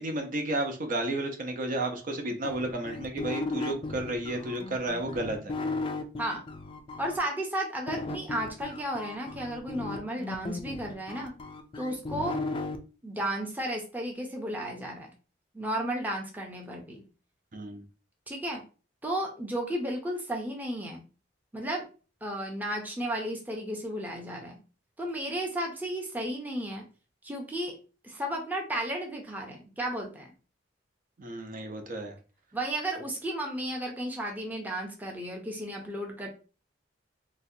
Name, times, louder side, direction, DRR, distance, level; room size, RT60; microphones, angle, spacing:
voice 1, 0.0-5.6 17.5-17.9 31.2-32.2, right 1 dB, 50° right, 3 dB, 0.6 m, -32 dB
sound 1, 2.4-7.2 7.9-12.8, left 3 dB, 30° left, 0.4 m, -36 dB
voice 2, 7.0-11.3 11.8-12.4 13.0-15.1 15.5-17.0 18.3-18.6 19.0-21.0 21.5-21.9 22.2-24.6 25.0-26.8 27.2-27.8 28.0-30.3 32.5-36.3, right 1 dB, 10° right, 0 dB, 0.6 m, -33 dB
4.0 x 2.2 x 2.7 m, 0.35 s
head